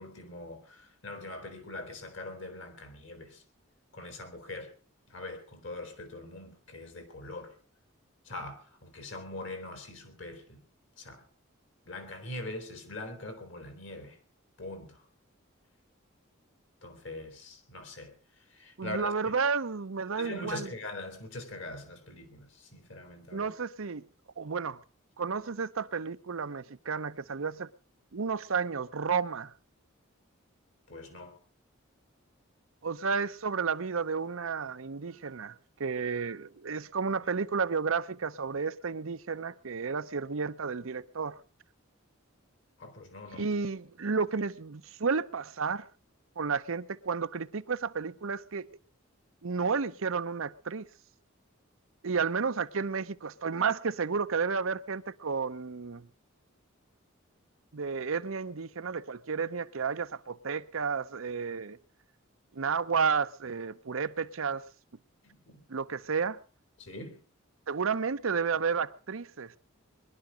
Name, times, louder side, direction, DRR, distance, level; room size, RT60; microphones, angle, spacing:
voice 1, 0.0-3.4 3.9-4.7 5.1-7.5 8.3-10.6 11.0-11.2 11.9-14.2 14.6-15.0 16.8-18.1 18.5-19.1 20.2-23.5 30.9-31.3 42.8-43.5 65.2-65.6 66.8-67.2, left 2 dB, 60° left, 3.5 m, -42 dB
voice 2, 18.8-20.7 23.3-24.0 24.4-24.8 25.2-27.7 28.1-29.5 32.8-35.5 35.8-41.3 43.3-45.8 46.4-48.7 49.4-50.9 52.0-56.1 57.7-61.8 62.5-64.6 65.7-66.4 67.7-69.5, right 5 dB, 75° right, 0.7 m, -32 dB
21.5 x 11.5 x 5.0 m
head